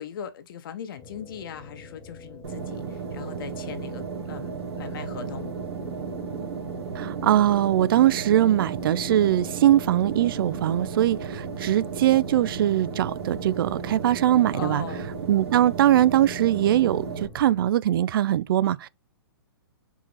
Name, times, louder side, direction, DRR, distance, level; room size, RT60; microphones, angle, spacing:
voice 1, 0.0-5.5 14.5-15.3, left 8 dB, 55° left, 0.9 m, -39 dB
sound 1, 1.0-17.7, left 2 dB, 20° left, 1.1 m, -46 dB
sound 2, 2.4-17.3, right 5 dB, 85° right, 1.7 m, -34 dB
voice 2, 7.0-14.8 15.3-18.9, right 12 dB, 60° right, 0.4 m, -21 dB
4.7 x 2.9 x 3.9 m
hypercardioid pair, 140°, 13 cm